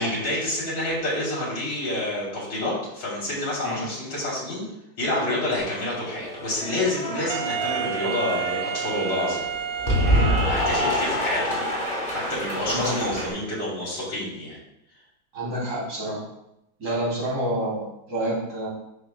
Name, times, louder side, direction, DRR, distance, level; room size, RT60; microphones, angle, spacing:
voice 1, 0.0-4.6 5.0-9.4 10.0-11.8 12.1-14.6, left 1 dB, 80° left, -6 dB, 4.3 m, -28 dB
Cheering / Applause, 5.6-13.3, equal, 25° left, 4.0 m, -27 dB
Wind instrument woodwind instrument, 7.3-11.2, right 8 dB, 75° right, 1.2 m, -31 dB
voice 2, 10.0-10.5 12.7-13.1 15.3-16.2 16.8-18.7, right 1 dB, 55° right, -5 dB, 3.8 m, -28 dB
11.5 x 8.1 x 2.4 m, 0.84 s
omnidirectional pair, 2.1 m